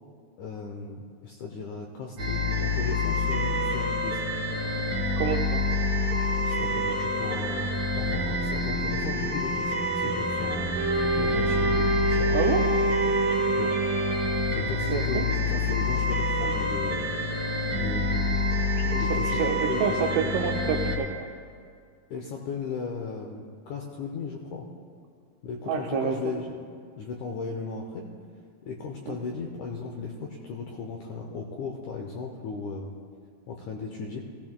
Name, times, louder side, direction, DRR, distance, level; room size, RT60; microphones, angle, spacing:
voice 1, 0.4-4.2 6.5-12.6 13.0-13.2 13.6-13.8 14.5-17.3 17.7-18.4 19.0-20.3 22.1-24.7 25.4-26.6 27.0-28.1 28.6-32.9 33.5-34.2, left 4 dB, 80° left, 1 dB, 1.7 m, -36 dB
sound 1, 2.2-21.0, left 2 dB, 45° right, 1.5 m, -27 dB
voice 2, 5.2-5.6 12.3-12.6 14.9-15.3 18.8-21.3 25.7-26.2 29.1-29.2, right 7 dB, 85° right, 1 dB, 1.9 m, -28 dB
Wind instrument woodwind instrument, 10.8-14.7, right 2 dB, 70° right, 2.7 m, -27 dB
16.5 x 16.0 x 2.2 m, 2.2 s
omnidirectional pair, 4.4 m